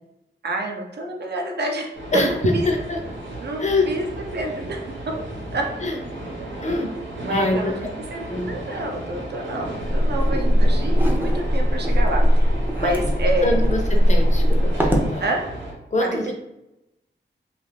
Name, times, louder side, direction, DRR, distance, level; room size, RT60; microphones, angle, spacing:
voice 1, 0.4-2.7 3.4-4.1 4.3-5.2 5.5-5.7 7.2-7.7 8.1-13.7 15.2-15.5 16.0-16.2, right 2 dB, 60° right, 1 dB, 0.6 m, -28 dB
sound 1, 1.9-15.7, right 1 dB, 85° right, 0.9 m, -35 dB
voice 2, 2.1-3.0 3.6-3.9 5.8-6.0 6.6-6.9 7.3-7.7 8.3-8.5 12.8-12.9 13.4-15.2 15.9-16.3, left 2 dB, 40° left, 3 dB, 0.5 m, -24 dB
sound 2, 9.8-15.1, equal, 10° right, 0.5 m, -19 dB
2.4 x 2.4 x 3.2 m, 0.89 s
wide cardioid pair, 80°, 19 cm